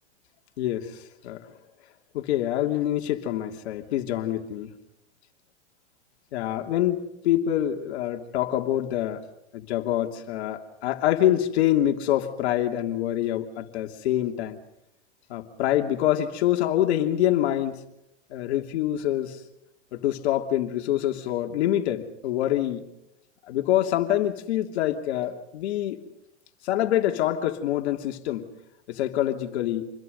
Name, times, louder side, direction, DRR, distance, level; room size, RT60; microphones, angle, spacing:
voice 1, 0.6-0.9 1.2-1.5 2.1-4.7 6.3-9.2 9.5-14.6 15.3-17.8 18.3-19.4 19.9-22.9 23.5-26.0 26.6-28.5 28.9-29.9, left 12 dB, 60° left, 4 dB, 2.9 m, -25 dB
28.0 x 21.5 x 5.4 m, 0.84 s
hypercardioid pair, 135°, 36 cm